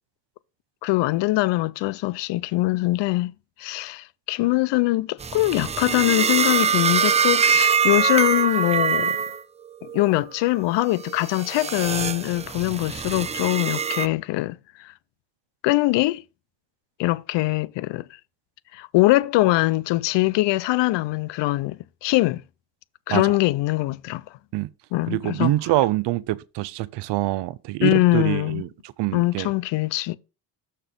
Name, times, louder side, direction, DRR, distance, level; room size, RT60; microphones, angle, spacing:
voice 1, 0.8-3.3 3.6-9.2 9.8-14.9 15.6-16.2 17.0-18.0 18.7-22.4 23.1-24.2 24.9-25.5 27.8-28.6 29.1-30.2, left 19 dB, 70° left, 0.6 m, -22 dB
sound 1, 5.2-9.4 9.8-10.2 10.9-14.1, right 6 dB, 15° right, 0.3 m, -23 dB
voice 2, 25.1-29.5, right 16 dB, 65° right, 0.6 m, -25 dB
6.8 x 4.3 x 5.2 m
supercardioid pair, 80°, 44 cm